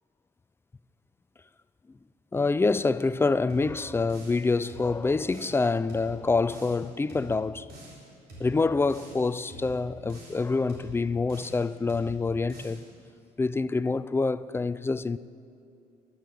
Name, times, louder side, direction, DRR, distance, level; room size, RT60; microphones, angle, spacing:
voice 1, 2.3-7.7 8.4-12.8 13.4-15.2, left 3 dB, 15° left, 0.3 m, -26 dB
sound 1, 3.5-4.4 4.7-5.6 5.9-6.8 7.1-8.0 8.3-9.2 9.5-10.4 10.7-11.6 11.9-12.8, right 1 dB, 70° right, 4.3 m, -46 dB
12.5 x 11.0 x 8.1 m
cardioid pair, 110°, 17 cm